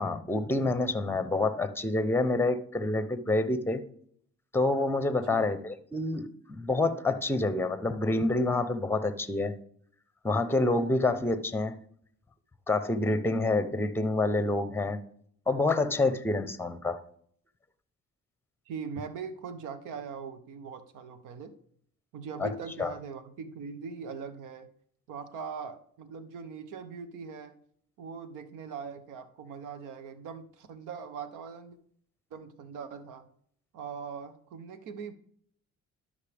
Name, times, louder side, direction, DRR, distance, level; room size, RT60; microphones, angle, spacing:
voice 1, 0.0-3.8 4.5-9.5 10.2-11.7 12.7-15.0 15.5-17.0 22.4-22.5 22.8-22.9, left 2 dB, 5° left, 12 dB, 0.8 m, -27 dB
voice 2, 18.7-21.5 22.1-24.7 25.1-27.5 28.0-31.8 32.3-33.3 33.7-35.1, right 6 dB, 90° right, 11 dB, 0.9 m, -41 dB
12.0 x 5.5 x 3.5 m, 0.63 s
cardioid pair, 90°, 30 cm